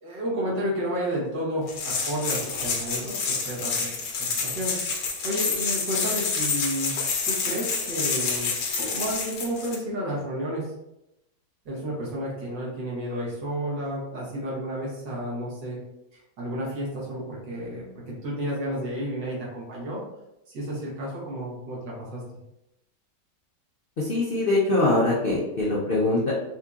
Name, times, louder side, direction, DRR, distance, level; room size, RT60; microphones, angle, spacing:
voice 1, 0.0-3.2 3.5-3.9 4.2-4.8 5.2-7.0 7.2-8.5 8.8-10.7 11.7-15.8 16.1-20.0 20.5-22.2, equal, 85° right, -4 dB, 1.9 m, -31 dB
sound 1, 1.7-9.8, left 4 dB, 85° left, 1.4 m, -28 dB
voice 2, 24.0-26.3, left 2 dB, 65° left, -6 dB, 0.5 m, -23 dB
4.5 x 2.8 x 2.4 m, 0.88 s
omnidirectional pair, 1.9 m